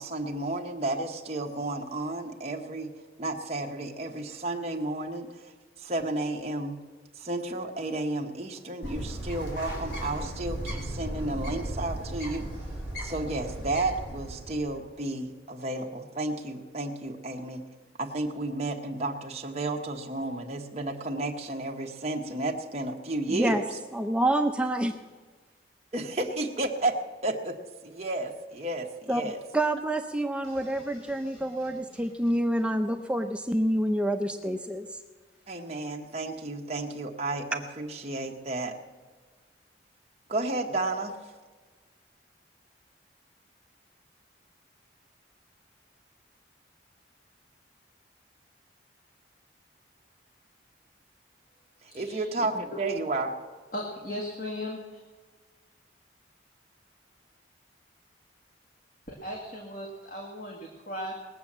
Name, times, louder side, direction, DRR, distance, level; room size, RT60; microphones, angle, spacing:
voice 1, 0.0-6.8 7.1-12.7 13.0-17.6 18.0-23.8 25.9-29.4 35.5-38.7 40.3-41.3 51.8-53.4, right 2 dB, 35° right, 0 dB, 1.1 m, -32 dB
Bird, 8.8-14.8, right 1 dB, 60° left, 4.2 m, -36 dB
voice 2, 23.3-23.6 23.9-24.9 29.1-29.2 29.5-34.9, right 1 dB, 5° right, 5 dB, 0.5 m, -27 dB
sound 1, 30.4-34.2, right 1 dB, 25° left, 4.3 m, -54 dB
voice 3, 51.9-52.2 52.5-52.8 53.7-55.0 59.1-61.2, left 1 dB, 45° left, 0 dB, 1.7 m, -37 dB
19.5 x 7.6 x 7.3 m, 1.4 s
head